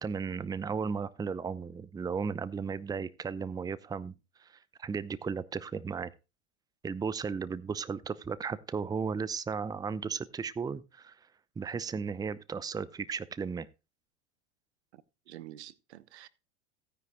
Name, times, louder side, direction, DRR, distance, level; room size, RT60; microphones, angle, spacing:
voice 1, 0.0-4.1 4.4-4.5 4.8-6.1 6.8-11.2 11.6-13.7, right 5 dB, 10° right, 0.7 m, -35 dB
voice 2, 14.9-16.3, right 13 dB, 75° right, 1.0 m, -49 dB
16.0 x 10.0 x 2.2 m
hypercardioid pair, 100°, 34 cm